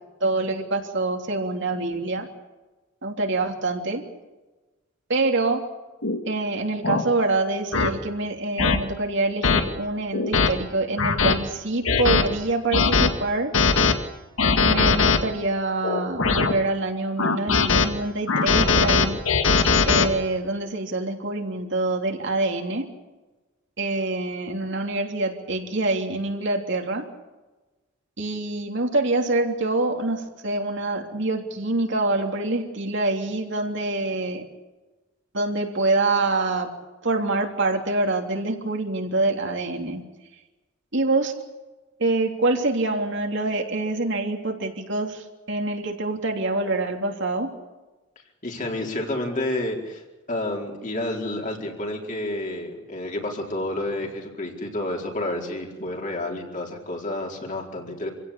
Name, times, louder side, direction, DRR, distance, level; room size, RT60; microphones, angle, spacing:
voice 1, 0.2-2.3 3.0-4.0 5.1-5.6 6.3-13.5 14.6-19.2 19.9-22.8 23.8-27.0 28.2-34.4 35.3-36.7 37.0-40.0 40.9-41.3 42.0-47.5, right 2 dB, 65° right, 2 dB, 3.2 m, -25 dB
sound 1, 6.0-6.2 6.8-7.0 7.7-7.9 8.6-8.8 9.4-9.6 10.1-10.5 11.0-11.4 11.9-12.2 12.7-13.1 13.5-13.9 14.4-15.2 15.8-16.5 17.2-17.9 18.3-20.1, left 4 dB, 80° left, 2.0 m, -20 dB
voice 2, 48.4-50.0 50.3-58.1, left 1 dB, 40° left, 0 dB, 4.6 m, -30 dB
27.0 x 16.5 x 8.6 m, 1.2 s
head